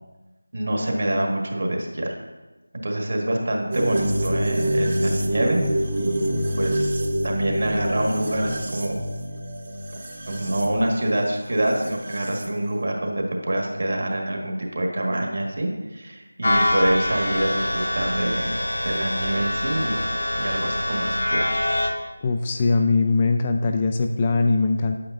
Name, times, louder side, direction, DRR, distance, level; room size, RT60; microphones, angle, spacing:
voice 1, 0.5-2.1 2.8-5.6 5.9-9.0 10.3-18.6 18.8-20.0 20.4-21.6, right 1 dB, 55° right, 1 dB, 1.6 m, -26 dB
sound 1, 3.7-12.5, right 1 dB, 35° right, 0.9 m, -27 dB
sound 2, 16.4-21.9, left 1 dB, 60° left, 1.5 m, -25 dB
voice 2, 22.2-25.0, left 3 dB, 20° left, 4 dB, 0.3 m, -21 dB
8.6 x 8.2 x 2.6 m, 1.1 s
figure-of-eight pair, 170°, 0 cm